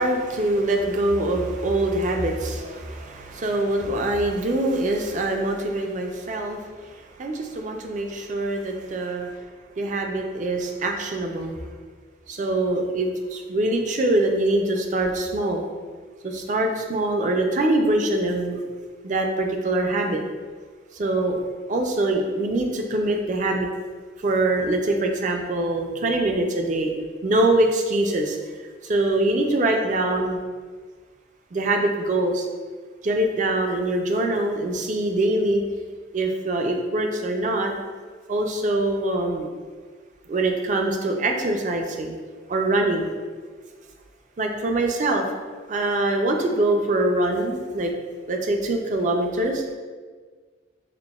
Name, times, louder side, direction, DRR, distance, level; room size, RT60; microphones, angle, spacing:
voice 1, 0.0-9.4 9.8-11.6 12.3-15.6 16.2-18.6 19.0-20.2 20.9-21.4 21.7-23.7 24.2-26.9 27.2-28.4 28.8-30.4 31.5-32.5 33.0-35.6 36.1-37.7 38.3-39.5 40.3-42.1 42.5-43.1 44.4-45.2 45.7-47.9 48.3-49.6, right 2 dB, 40° right, 3 dB, 0.3 m, -24 dB
5.7 x 2.1 x 2.3 m, 1.5 s
head